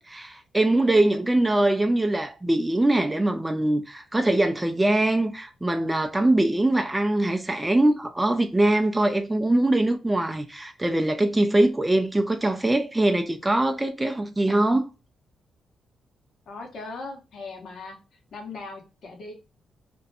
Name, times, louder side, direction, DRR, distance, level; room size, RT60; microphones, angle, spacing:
voice 1, 0.0-14.9, right 1 dB, 15° right, 0.3 m, -22 dB
voice 2, 16.5-18.0 18.3-19.3, left 3 dB, 65° left, 1.0 m, -39 dB
2.5 x 2.1 x 2.6 m
cardioid pair, 90°, 0 cm